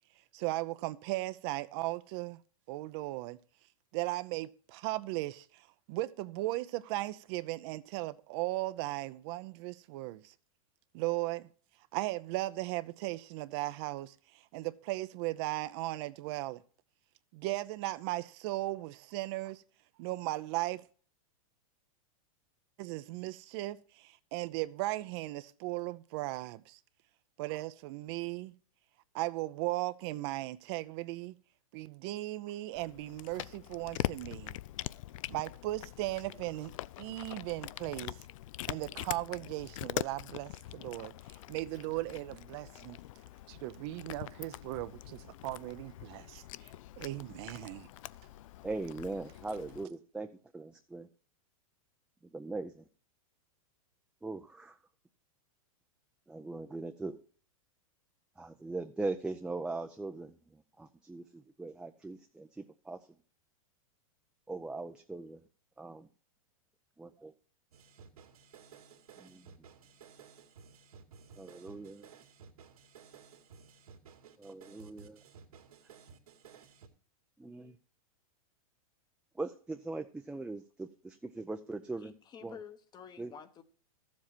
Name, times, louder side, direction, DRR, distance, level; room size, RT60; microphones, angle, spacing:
voice 1, 0.3-2.4 2.7-3.4 3.9-10.3 10.9-11.5 11.9-16.6 17.3-19.6 20.0-20.8 22.8-26.8 27.4-28.5 29.1-31.3 31.7-34.6 35.3-36.7 37.0-38.2 38.7-43.0 43.5-46.4 47.0-47.9, right 18 dB, 45° right, 0.6 m, -37 dB
Cat, 32.7-49.8, left 15 dB, 65° left, 0.4 m, -43 dB
voice 2, 48.6-50.3 50.5-51.1 52.3-52.8 54.2-54.8 56.3-57.2 58.4-63.1 64.5-65.4 65.8-66.1 67.0-67.3 69.2-69.5 71.4-72.1 74.4-75.2 77.4-77.8 79.3-82.1 82.4-82.6 83.2-83.3, right 3 dB, 5° right, 0.5 m, -40 dB
sound 1, 67.7-76.9, right 6 dB, 90° right, 2.2 m, -55 dB
voice 3, 82.0-83.6, left 7 dB, 20° left, 1.0 m, -50 dB
13.5 x 7.5 x 4.4 m
hypercardioid pair, 130°, 18 cm